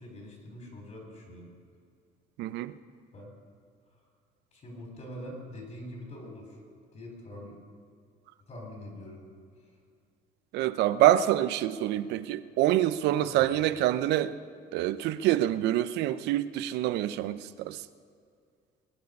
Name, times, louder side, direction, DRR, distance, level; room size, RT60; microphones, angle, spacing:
voice 1, 0.0-1.5 3.1-3.3 4.5-6.6 6.9-7.6 8.5-9.2 13.1-13.5, left 1 dB, 45° left, 4.4 m, -44 dB
voice 2, 2.4-2.7 10.5-14.4 14.7-17.8, right 13 dB, 85° right, 0.6 m, -26 dB
21.5 x 9.5 x 5.4 m
cardioid pair, 110°, 17 cm